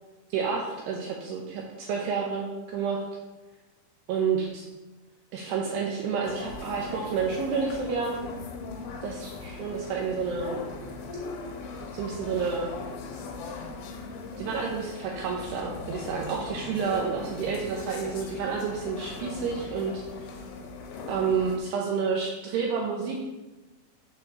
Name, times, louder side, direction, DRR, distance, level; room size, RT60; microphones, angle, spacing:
voice 1, 0.3-3.0 4.1-4.7 5.3-8.2 9.0-10.6 11.9-12.7 14.4-20.0 21.1-23.3, right 5 dB, 80° right, -1 dB, 2.4 m, -29 dB
sound 1, 6.2-21.6, left 4 dB, 85° left, 3.3 m, -39 dB
7.1 x 3.4 x 6.3 m, 1.1 s
omnidirectional pair, 5.5 m